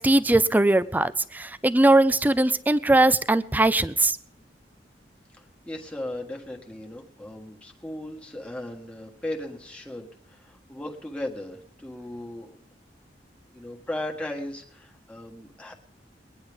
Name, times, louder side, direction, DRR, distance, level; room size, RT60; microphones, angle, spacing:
voice 1, 0.0-4.2, right 2 dB, 10° right, 15 dB, 0.4 m, -20 dB
voice 2, 5.4-12.6 13.5-15.7, left 1 dB, 5° left, 0 dB, 1.5 m, -37 dB
22.5 x 9.9 x 3.5 m, 0.66 s
head